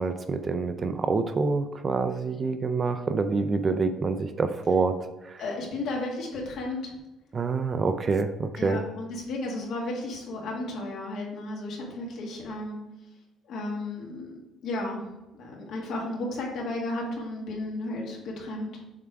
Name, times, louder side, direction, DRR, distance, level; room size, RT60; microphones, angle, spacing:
voice 1, 0.0-5.0 5.2-5.4 7.3-8.8, right 4 dB, 25° right, 9 dB, 0.4 m, -26 dB
voice 2, 5.4-6.9 8.6-12.8 13.5-14.3 14.6-15.0 15.3-18.8, left 2 dB, 60° left, -1 dB, 1.9 m, -33 dB
7.3 x 3.5 x 4.6 m, 1.0 s
cardioid pair, 160°, 0 cm